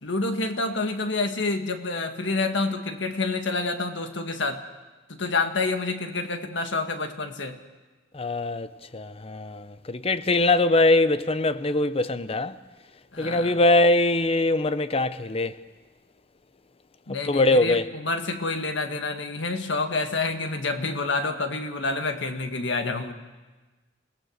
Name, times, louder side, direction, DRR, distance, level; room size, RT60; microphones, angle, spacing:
voice 1, 0.0-4.6 5.1-7.6 13.1-13.6 17.1-23.1, left 3 dB, 75° left, 1.8 m, -28 dB
voice 2, 8.1-8.7 8.9-12.6 13.2-15.6 17.2-17.8, left 2 dB, 30° left, 0.7 m, -22 dB
29.0 x 18.0 x 6.5 m
head